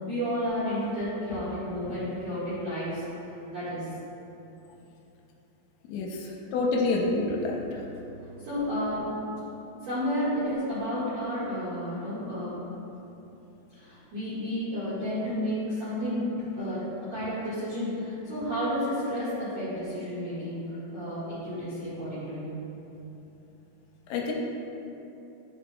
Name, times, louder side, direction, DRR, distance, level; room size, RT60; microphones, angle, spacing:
voice 1, 0.1-3.0 3.5-3.9 6.2-6.3 8.4-9.1 9.8-12.6 13.8-22.6, equal, 65° right, -13 dB, 1.6 m, -31 dB
voice 2, 5.9-7.6 24.1-24.3, left 3 dB, 85° left, -1 dB, 2.9 m, -27 dB
11.5 x 5.9 x 2.2 m, 3.0 s
omnidirectional pair, 5.5 m